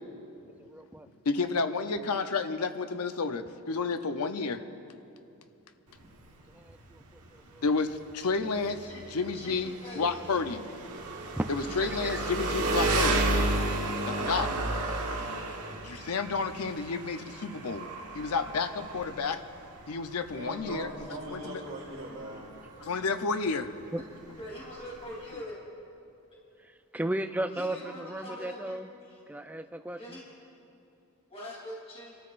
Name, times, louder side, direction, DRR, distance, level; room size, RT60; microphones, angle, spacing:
voice 1, 0.7-1.1 6.7-7.0 7.5-7.6 11.4-11.5 11.9-12.2 23.9-24.0 26.9-28.9 29.3-30.2, right 1 dB, 5° right, 7 dB, 0.4 m, -34 dB
voice 2, 1.3-4.6 7.6-10.6 11.5-13.3 14.1-14.5 15.8-17.9 18.1-19.4 19.9-20.9 21.3-21.6 22.8-23.7 25.3-25.4, left 4 dB, 80° left, 9 dB, 0.7 m, -31 dB
Engine, 5.9-25.5, right 2 dB, 80° right, 1.4 m, -33 dB
voice 3, 9.3-10.2 24.4-25.6 27.5-28.8 29.1-29.2 30.0-30.2 31.3-32.2, left 1 dB, 30° left, -5 dB, 3.1 m, -43 dB
voice 4, 20.3-22.5, right 1 dB, 60° right, -8 dB, 3.1 m, -40 dB
29.0 x 13.5 x 2.5 m, 2.7 s
head